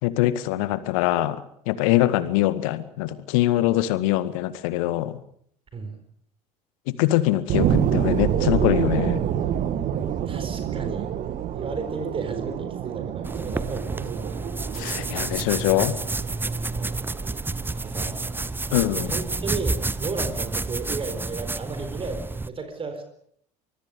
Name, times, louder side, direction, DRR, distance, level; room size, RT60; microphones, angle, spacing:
voice 1, 0.0-5.2 6.9-9.2 14.7-16.0 18.7-19.1, left 15 dB, 60° left, 15 dB, 1.8 m, -23 dB
sound 1, 7.5-18.5 19.0-19.1, right 9 dB, 45° right, 2.4 m, -27 dB
voice 2, 10.3-11.1 11.5-14.4 16.7-16.9 17.8-18.3 18.9-23.0, right 4 dB, 30° right, 8 dB, 4.3 m, -34 dB
sound 2, 13.2-22.5, right 3 dB, 10° right, 1.1 m, -30 dB
25.0 x 22.5 x 6.8 m, 0.66 s
figure-of-eight pair, 65°, 19 cm